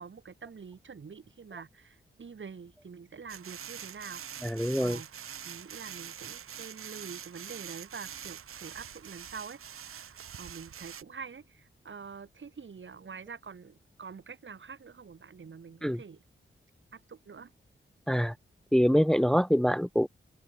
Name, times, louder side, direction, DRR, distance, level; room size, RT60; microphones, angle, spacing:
voice 1, 0.0-5.1 5.4-16.2 16.9-17.5, right 5 dB, 65° right, 7.1 m, -46 dB
sound 1, 3.3-11.0, right 8 dB, 90° right, 6.7 m, -44 dB
voice 2, 4.4-5.0 15.8-16.0 18.1-18.3 18.7-20.1, equal, ahead, 0.9 m, -25 dB
cardioid pair, 55°, 21 cm